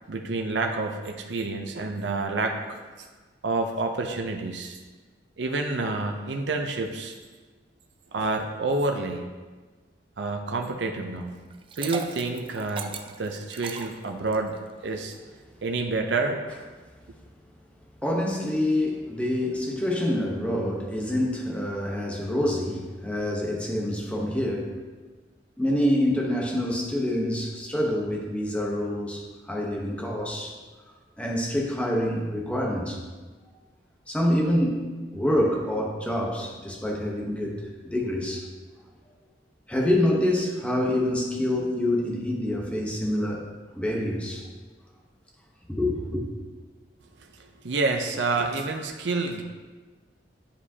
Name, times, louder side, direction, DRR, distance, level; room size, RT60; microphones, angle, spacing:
voice 1, 0.1-3.1 3.4-4.8 5.4-7.1 8.1-9.2 10.2-11.4 11.8-14.6 14.8-15.1 15.6-16.4 47.2-47.3 47.6-49.4, right 3 dB, 80° right, 3 dB, 0.6 m, -28 dB
Liquid, 11.5-14.6, right 5 dB, 30° right, 0.3 m, -37 dB
voice 2, 18.0-24.7 25.6-30.5 31.2-33.0 34.1-34.9 35.1-38.5 39.7-43.5 43.8-44.4 45.7-46.2, left 1 dB, 5° left, -1 dB, 0.9 m, -26 dB
10.0 x 5.0 x 2.8 m, 1.3 s
head